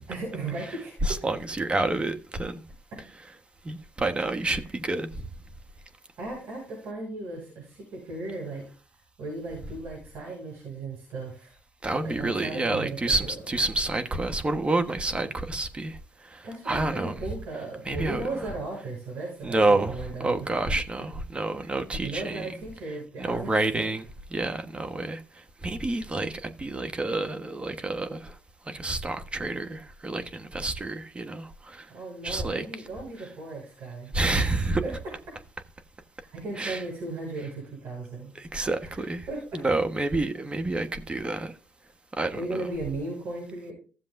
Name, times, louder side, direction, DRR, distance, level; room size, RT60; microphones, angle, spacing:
voice 1, 0.1-1.3 4.3-4.6 6.2-8.6 9.2-11.5 12.0-13.5 16.4-20.7 21.5-21.8 22.0-23.5 31.9-35.0 36.3-38.3 38.8-39.6 42.3-43.7, right 2 dB, 70° right, 5.7 m, -36 dB
voice 2, 1.1-2.6 3.6-5.1 11.8-16.0 16.3-17.1 17.9-18.2 19.4-22.5 23.2-24.0 24.3-25.2 25.6-28.3 28.7-31.8 32.2-32.6 34.1-34.8 36.6-36.8 38.3-39.3 39.5-41.5 42.2-42.6, right 2 dB, 25° right, 1.3 m, -28 dB
15.0 x 7.3 x 2.6 m
supercardioid pair, 65°, 4 cm